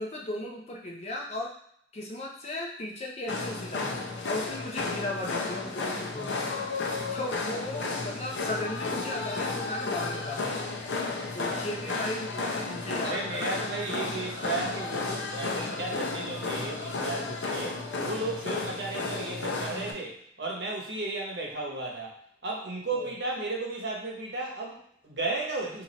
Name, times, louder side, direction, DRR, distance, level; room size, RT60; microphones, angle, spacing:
voice 1, 0.0-1.5 1.9-4.0 4.3-6.5 7.1-10.6 11.3-13.5 22.9-23.1, left 1 dB, 35° left, -1 dB, 0.6 m, -36 dB
sound 1, 3.3-19.9, left 3 dB, 80° left, 0.6 m, -33 dB
voice 2, 11.2-11.5 13.0-22.1 22.4-25.8, right 2 dB, 70° right, -1 dB, 0.9 m, -34 dB
2.9 x 2.6 x 4.0 m, 0.69 s
head